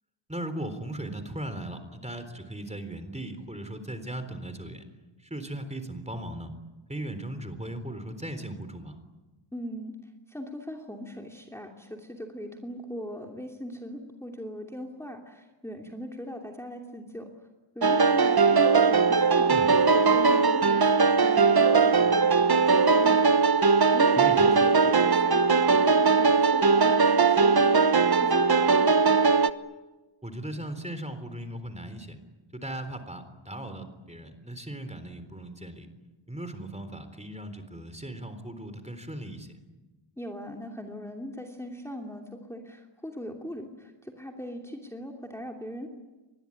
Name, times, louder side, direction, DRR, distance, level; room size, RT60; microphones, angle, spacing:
voice 1, 0.3-4.8 5.3-6.5 6.9-9.0 19.5-19.7 24.2-24.5 30.2-32.2 32.5-35.9 36.3-39.5, right 1 dB, 15° right, 9 dB, 3.8 m, -37 dB
voice 2, 9.5-9.9 10.3-17.3 17.7-19.5 19.9-23.2 23.9-28.9 40.2-45.9, equal, 5° left, 1 dB, 2.8 m, -40 dB
sound 1, 17.8-29.5, right 4 dB, 50° right, 1.1 m, -20 dB
25.0 x 21.0 x 9.9 m, 1.2 s
wide cardioid pair, 75°, 47 cm